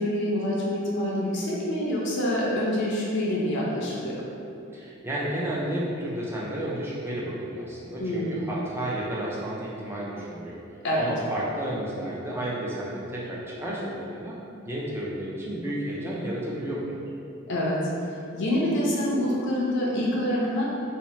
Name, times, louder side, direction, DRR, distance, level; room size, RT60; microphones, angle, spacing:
voice 1, 0.0-4.3 8.0-8.4 10.8-11.0 17.5-17.8 18.3-20.6, left 1 dB, 55° left, -5 dB, 0.5 m, -26 dB
voice 2, 4.7-10.6 11.0-14.4 14.7-17.0, right 1 dB, 10° right, -6 dB, 0.4 m, -32 dB
2.7 x 2.0 x 3.0 m, 2.6 s
head